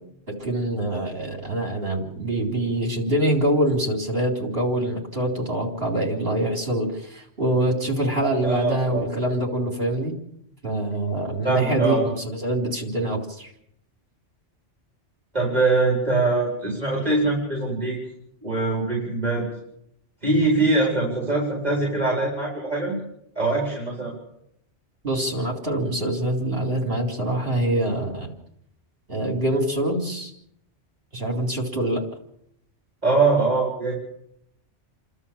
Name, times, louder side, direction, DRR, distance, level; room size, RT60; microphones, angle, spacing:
voice 1, 0.3-10.1 10.6-13.5 25.0-28.3 29.1-30.3 31.1-32.1, right 1 dB, 55° right, 1 dB, 4.1 m, -25 dB
voice 2, 8.4-9.1 11.4-12.0 15.3-18.0 18.4-19.4 20.2-22.9 23.3-24.1 33.0-33.9, right 3 dB, 35° right, -2 dB, 4.9 m, -22 dB
29.5 x 12.5 x 7.3 m, 0.76 s
omnidirectional pair, 1.2 m